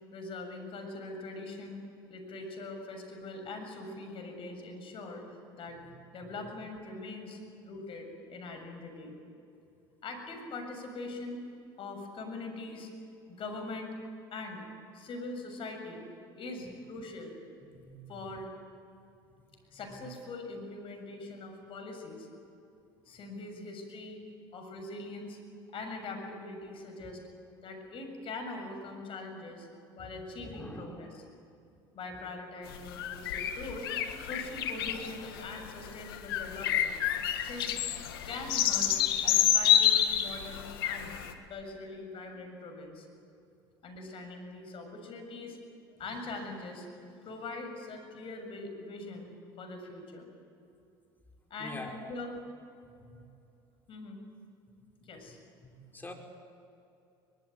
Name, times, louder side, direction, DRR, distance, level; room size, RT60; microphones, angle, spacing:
voice 1, 0.1-1.8 2.1-5.8 6.1-9.1 10.0-11.4 11.8-12.9 13.3-13.9 14.3-14.7 14.9-16.0 16.4-17.4 18.1-18.5 19.7-22.3 23.1-24.2 24.5-25.4 25.7-27.2 27.6-31.2 31.9-33.9 34.2-36.9 37.3-37.8 38.2-39.0 39.2-41.1 41.5-43.1 43.8-45.6 46.0-46.9 47.2-49.3 49.6-50.3 51.5-52.4 53.9-54.2 55.0-55.4, left 2 dB, 50° left, 4 dB, 7.1 m, -42 dB
voice 2, 30.4-31.0 51.6-51.9 55.6-56.1, left 2 dB, 15° left, 2 dB, 5.4 m, -45 dB
sound 1, 32.7-41.3, left 10 dB, 85° left, 1.8 m, -29 dB
24.0 x 22.0 x 9.5 m, 2.6 s
hypercardioid pair, 80°, 12 cm